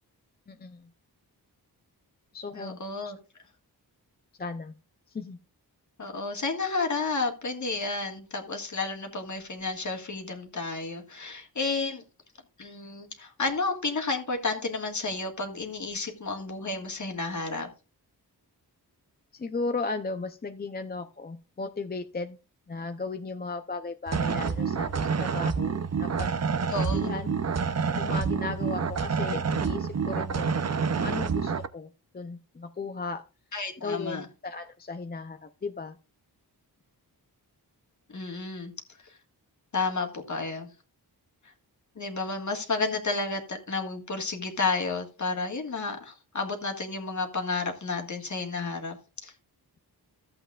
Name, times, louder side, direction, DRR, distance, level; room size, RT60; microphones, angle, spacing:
voice 1, 0.5-0.9 2.3-3.1 4.4-4.7 5.1-5.4 19.3-22.4 22.7-26.3 26.6-27.3 27.9-30.6 31.0-33.3 33.8-36.0, left 3 dB, 25° left, 7 dB, 0.5 m, -36 dB
voice 2, 2.5-3.2 6.0-12.0 12.6-17.7 26.7-27.1 33.5-34.3 38.1-38.7 39.0-39.1 39.7-40.7 42.0-49.0 49.2-49.3, left 3 dB, 45° left, 3 dB, 1.7 m, -31 dB
sound 1, 24.1-31.7, right 5 dB, 40° right, 0.6 m, -28 dB
14.5 x 7.8 x 2.4 m, 0.32 s
wide cardioid pair, 130°, 40 cm